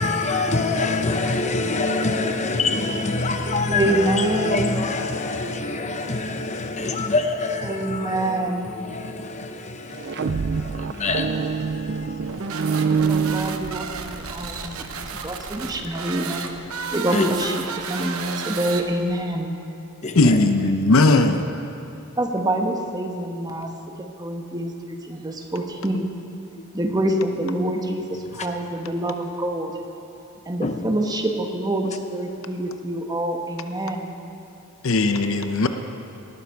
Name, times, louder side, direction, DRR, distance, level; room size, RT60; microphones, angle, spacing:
voice 1, 0.0-13.1 15.9-16.0 17.1-17.3 20.0-20.4 28.3-28.5 30.6-30.8, left 3 dB, 30° left, 6 dB, 0.7 m, -26 dB
voice 2, 3.7-4.8 7.6-8.8 12.9-16.4 16.9-17.6 17.9-19.5 22.2-23.7 24.0-26.1 26.7-29.7 30.5-34.2, right 1 dB, 20° right, 3 dB, 1.0 m, -26 dB
sound 1, 9.9-14.2, right 5 dB, 50° right, 0.4 m, -25 dB
sound 2, 12.2-19.2, right 5 dB, 70° right, 0.9 m, -32 dB
voice 3, 20.1-21.5 34.8-35.7, left 2 dB, 65° left, 7 dB, 0.8 m, -18 dB
19.0 x 12.5 x 4.6 m, 2.7 s
head